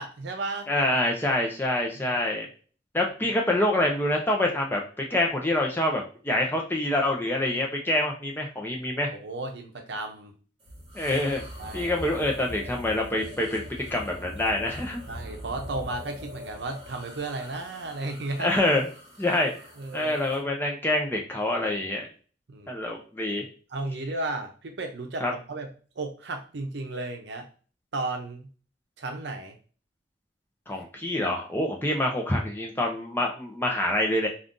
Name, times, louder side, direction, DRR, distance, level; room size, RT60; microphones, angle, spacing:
voice 1, 0.0-0.7 1.9-2.2 9.1-10.3 11.6-11.9 15.1-18.5 19.8-20.1 22.5-22.8 23.7-27.5 27.9-28.5 29.0-29.6, right 2 dB, 75° right, 4 dB, 0.6 m, -34 dB
voice 2, 0.7-2.5 2.9-9.1 10.9-11.4 11.7-13.6 13.9-15.0 18.4-18.9 19.2-19.5 19.9-22.1 22.7-23.4 25.2-25.3 30.7-34.3, left 1 dB, 10° left, 0 dB, 0.5 m, -26 dB
sound 1, 10.6-20.4, left 1 dB, 30° right, 1.0 m, -42 dB
2.6 x 2.4 x 3.6 m, 0.39 s
head